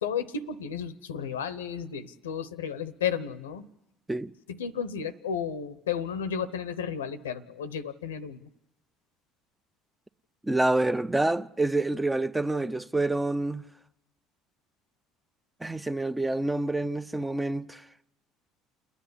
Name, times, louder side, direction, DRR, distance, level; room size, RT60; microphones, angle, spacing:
voice 1, 0.0-3.7 4.5-8.5, left 7 dB, 85° left, 0.8 m, -33 dB
voice 2, 10.4-13.7 15.6-17.8, right 2 dB, 10° right, 0.6 m, -27 dB
29.0 x 9.9 x 9.9 m
hypercardioid pair, 60°, 0 cm